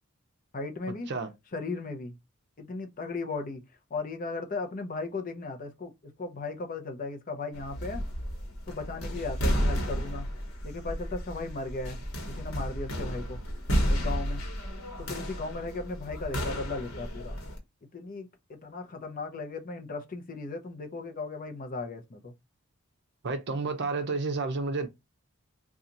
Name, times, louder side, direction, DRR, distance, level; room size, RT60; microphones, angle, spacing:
voice 1, 0.5-1.1 1.5-2.2 2.6-3.6 3.9-5.9 6.2-8.0 8.7-10.3 10.6-12.0 12.4-13.4 13.9-14.4 15.0-17.4 17.9-22.3, left 3 dB, 40° left, 0.6 m, -36 dB
sound 1, 7.5-17.6, equal, 70° left, 1.1 m, -32 dB
voice 2, 23.2-24.9, right 3 dB, 50° right, 0.6 m, -30 dB
2.8 x 2.4 x 3.8 m
head